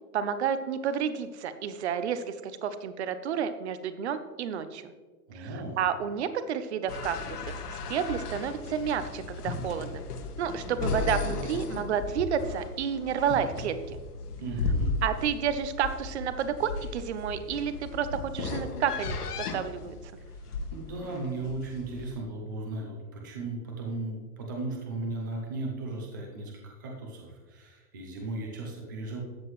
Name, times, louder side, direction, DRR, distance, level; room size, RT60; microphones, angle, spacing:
voice 1, 0.1-4.9 5.3-5.5 5.8-7.4 7.7-10.0 10.4-14.0 15.0-18.1 18.3-20.0, right 8 dB, 45° right, 12 dB, 0.8 m, -30 dB
voice 2, 5.3-5.8 14.4-14.9 20.2-29.2, right 2 dB, 15° right, 0 dB, 0.5 m, -36 dB
sound 1, 6.9-22.1, left 3 dB, 80° left, 2.2 m, -35 dB
13.5 x 9.1 x 3.1 m, 1.4 s
supercardioid pair, 180°, 46 cm